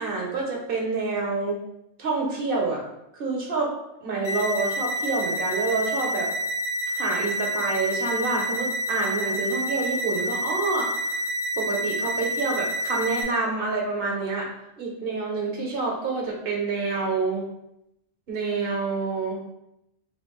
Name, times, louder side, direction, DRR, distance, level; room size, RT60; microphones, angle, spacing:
voice 1, 0.0-1.6 2.0-2.8 3.2-3.7 4.0-6.3 6.9-11.1 11.6-14.5 14.8-17.4 18.3-19.5, right 3 dB, 55° right, -1 dB, 1.0 m, -27 dB
sound 1, 4.2-13.2, right 1 dB, 45° left, 1.7 m, -28 dB
3.2 x 2.4 x 3.6 m, 0.84 s
omnidirectional pair, 1.2 m